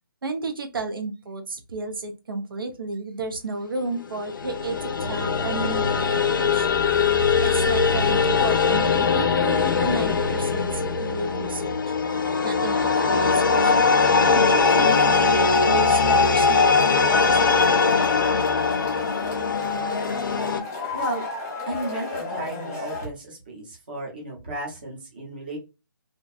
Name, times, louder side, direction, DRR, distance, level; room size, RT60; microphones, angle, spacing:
voice 1, 0.2-6.8 7.4-11.9 12.4-17.5, right 3 dB, 70° right, 5 dB, 0.6 m, -32 dB
sound 1, 4.1-20.6, left 5 dB, 65° left, 0.5 m, -21 dB
Male speech man speaking / Shout / Clapping, 14.6-23.0, left 3 dB, 15° left, 0.7 m, -32 dB
voice 2, 20.9-21.2 21.7-25.6, right 2 dB, 25° right, -1 dB, 0.7 m, -33 dB
2.6 x 2.2 x 2.3 m, 0.28 s
hypercardioid pair, 175°, 12 cm